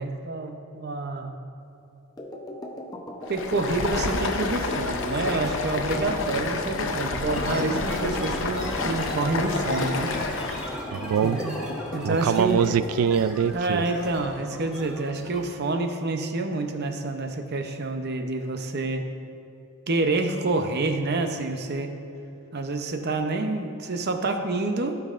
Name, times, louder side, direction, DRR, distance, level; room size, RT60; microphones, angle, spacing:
voice 1, 0.0-1.4 3.3-10.1 11.2-11.6 11.9-12.6 13.5-19.1 19.9-21.9 22.5-25.0, right 2 dB, 50° right, 5 dB, 0.7 m, -28 dB
sound 1, 2.2-13.0, left 1 dB, 15° left, 0.7 m, -38 dB
Stream, 3.2-10.8, left 3 dB, 60° left, 0.6 m, -29 dB
sound 2, 7.3-15.6, equal, 5° right, 1.3 m, -38 dB
voice 2, 10.9-11.4 12.0-13.9, right 7 dB, 75° right, 15 dB, 0.3 m, -23 dB
16.0 x 5.4 x 2.5 m, 2.8 s
head